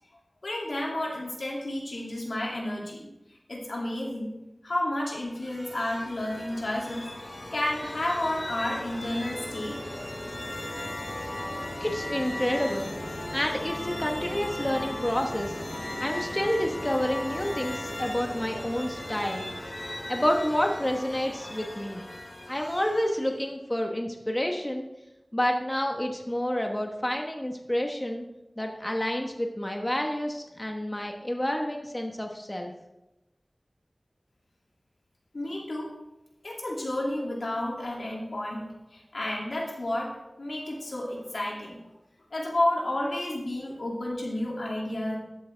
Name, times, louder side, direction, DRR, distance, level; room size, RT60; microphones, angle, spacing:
voice 1, 0.4-3.1 3.5-4.3 4.6-9.8 35.3-35.9 36.4-40.1 40.4-41.8 42.3-45.2, left 1 dB, 85° left, -3 dB, 2.5 m, -31 dB
sound 1, 5.2-23.4, left 1 dB, 50° left, 2.6 m, -37 dB
voice 2, 11.8-12.9 13.3-15.6 16.0-19.5 20.1-22.1 22.5-24.9 25.3-28.3 28.6-32.7, left 1 dB, 20° left, 2 dB, 1.1 m, -29 dB
13.0 x 8.3 x 3.4 m, 0.95 s
wide cardioid pair, 55°, 0 cm